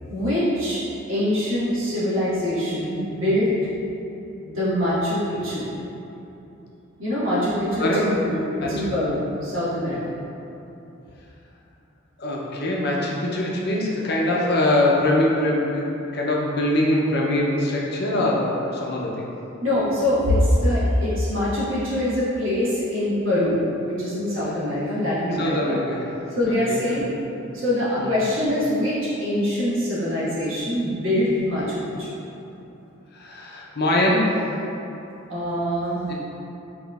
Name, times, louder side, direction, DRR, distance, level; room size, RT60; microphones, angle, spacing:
voice 1, 0.1-0.8 1.1-3.5 4.5-5.7 7.0-10.1 19.6-25.8 26.3-27.1 27.5-32.1 35.3-36.1, left 1 dB, 75° right, -10 dB, 1.4 m, -24 dB
voice 2, 7.8-8.1 8.6-8.7 12.2-15.9 16.1-18.5 18.8-19.2 25.4-26.1 26.5-27.0 28.0-28.2 33.1-34.3 36.1-36.2, left 1 dB, 55° left, -3 dB, 0.6 m, -23 dB
5.6 x 3.0 x 2.4 m, 2.9 s
head